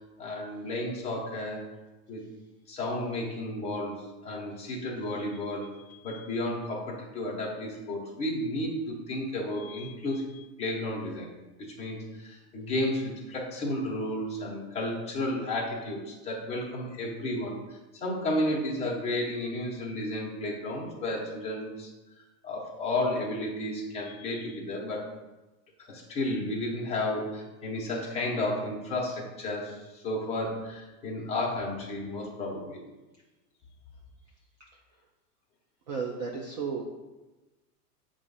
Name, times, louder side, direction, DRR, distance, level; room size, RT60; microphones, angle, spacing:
voice 1, 0.2-1.6 2.1-2.2 2.7-5.8 6.0-11.3 11.6-17.6 17.9-21.9 22.4-25.1 25.8-32.8, left 1 dB, 15° left, -3 dB, 0.9 m, -32 dB
voice 2, 35.9-36.8, right 5 dB, 30° right, 0 dB, 0.4 m, -33 dB
7.3 x 2.5 x 5.4 m, 1.1 s
supercardioid pair, 160°, 46 cm